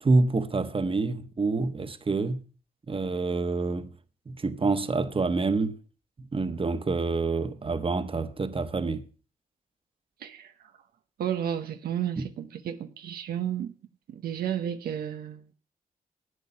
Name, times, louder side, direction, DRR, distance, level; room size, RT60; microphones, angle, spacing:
voice 1, 0.0-2.4 2.9-3.9 4.3-5.8 6.2-9.0 12.2-12.3, right 3 dB, 35° right, 1.2 m, -27 dB
voice 2, 10.2-10.5 11.2-13.7 14.1-15.5, right 9 dB, 90° right, 0.9 m, -32 dB
11.0 x 8.3 x 7.0 m
cardioid pair, 60°, 15 cm